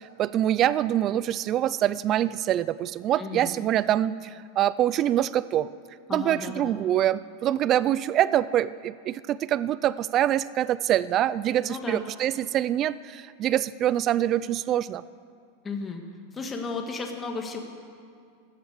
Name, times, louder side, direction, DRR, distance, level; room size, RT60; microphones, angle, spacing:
voice 1, 0.2-4.2 4.6-5.7 6.1-15.0, right 12 dB, 35° right, 18 dB, 0.4 m, -25 dB
voice 2, 3.2-3.5 6.1-6.7 11.6-12.0 15.6-16.0 16.3-17.6, left 4 dB, 20° left, 3 dB, 1.7 m, -34 dB
16.0 x 12.5 x 6.6 m, 2.2 s
supercardioid pair, 140°, 0 cm